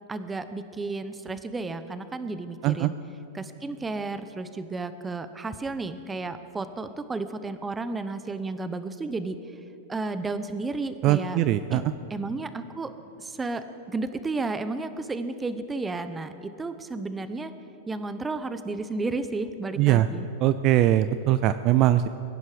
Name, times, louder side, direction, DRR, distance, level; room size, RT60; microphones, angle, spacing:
voice 1, 0.1-3.0 3.3-9.4 9.9-11.4 11.7-11.8 12.1-12.9 13.2-17.5 17.9-20.3, right 3 dB, 15° right, 11 dB, 0.8 m, -32 dB
voice 2, 11.0-11.8 19.8-20.1 20.4-22.1, right 13 dB, 45° right, 12 dB, 0.4 m, -21 dB
21.5 x 10.5 x 5.0 m, 2.8 s
hypercardioid pair, 130°, 0 cm